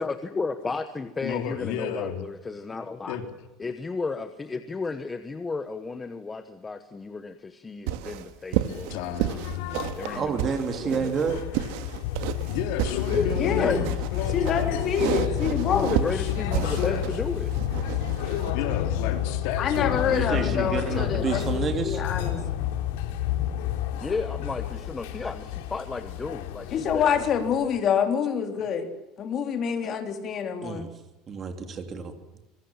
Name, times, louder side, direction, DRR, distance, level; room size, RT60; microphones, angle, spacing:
voice 1, 0.0-3.2 3.6-9.4 9.8-10.4 10.8-11.4 13.1-13.9 14.1-14.2 15.7-17.5 23.9-27.3, left 4 dB, 15° left, 9 dB, 1.2 m, -33 dB
voice 2, 1.2-2.2 3.1-3.3 8.9-10.0 11.8-13.8 14.1-15.1 15.9-16.3 16.6-16.9 18.5-21.0 23.1-23.3, left 8 dB, 65° left, 6 dB, 3.9 m, -32 dB
sound 1, 7.9-18.5, right 12 dB, 70° right, 2.2 m, -32 dB
sound 2, 8.6-27.8, left 11 dB, 90° left, 3.5 m, -30 dB
voice 3, 10.1-11.4 19.9-22.0 30.6-30.9 31.3-32.1, right 5 dB, 25° right, 7 dB, 3.0 m, -29 dB
voice 4, 13.4-13.8 14.3-15.9 19.6-22.4 26.7-28.9 29.2-30.9, left 7 dB, 35° left, 6 dB, 3.4 m, -26 dB
26.0 x 22.5 x 7.4 m, 1.0 s
cardioid pair, 165°, 0 cm